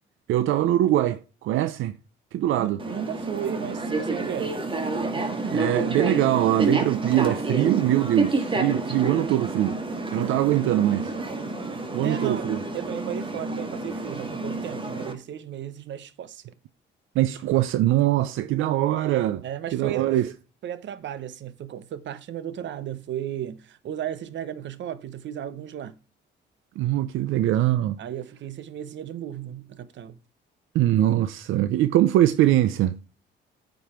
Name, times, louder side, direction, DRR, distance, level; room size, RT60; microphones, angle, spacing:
voice 1, 0.3-2.0 2.3-2.8 5.5-9.8 10.1-11.1 11.9-12.6 17.1-19.4 19.7-20.3 26.8-28.0 30.7-33.0, right 13 dB, 85° right, 0.6 m, -22 dB
voice 2, 2.6-4.6 5.1-5.7 12.0-12.5 12.7-16.5 19.4-20.1 20.6-26.0 28.0-30.2, right 10 dB, 65° right, 0.9 m, -35 dB
sound 1, 2.8-15.1, right 3 dB, 25° right, 1.8 m, -29 dB
9.4 x 5.3 x 4.4 m
cardioid pair, 90°, 20 cm